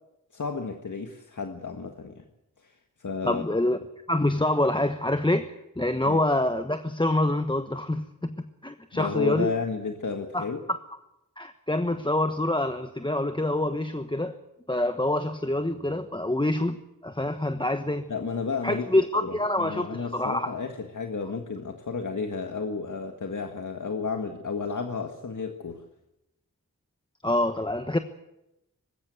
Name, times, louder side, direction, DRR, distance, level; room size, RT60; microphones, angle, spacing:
voice 1, 0.3-2.2 2.6-2.7 3.0-3.4 6.0-6.2 8.9-10.6 18.1-18.9 19.2-25.8, left 5 dB, 65° left, 5 dB, 1.7 m, -32 dB
voice 2, 3.2-3.8 4.1-9.5 10.3-10.8 11.4-14.4 14.7-18.1 18.6-20.5 27.2-28.0, left 1 dB, 15° left, 8 dB, 1.2 m, -26 dB
20.5 x 16.5 x 9.3 m, 0.89 s
wide cardioid pair, 60°, 33 cm